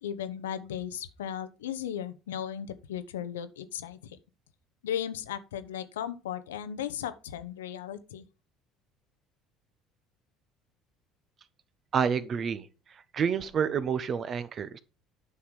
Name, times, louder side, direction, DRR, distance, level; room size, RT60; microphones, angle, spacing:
voice 1, 0.0-4.2 4.8-8.2, left 9 dB, 70° left, 0.8 m, -36 dB
voice 2, 11.9-12.7 12.9-14.8, right 7 dB, 40° right, 0.9 m, -29 dB
9.8 x 6.0 x 5.0 m
figure-of-eight pair, 60°, 0 cm